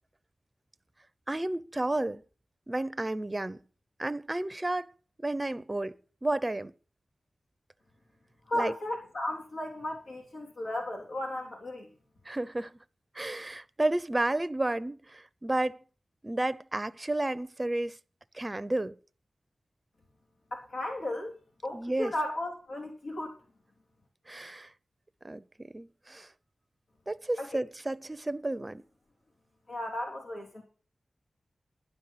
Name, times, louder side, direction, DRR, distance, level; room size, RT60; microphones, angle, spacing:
voice 1, 1.3-2.2 2.7-3.6 4.0-4.9 5.2-6.0 6.2-6.7 8.5-8.7 12.3-12.8 13.1-15.8 16.2-18.0 18.3-18.9 21.7-22.1 24.3-24.7 25.2-25.4 25.7-26.3 27.1-28.8, right 2 dB, 25° right, 0.7 m, -31 dB
voice 2, 8.5-11.9 20.5-21.4 21.6-23.4 27.4-27.6 29.7-30.6, left 1 dB, 80° left, 3.7 m, -35 dB
11.5 x 10.0 x 5.7 m
cardioid pair, 55°, 0 cm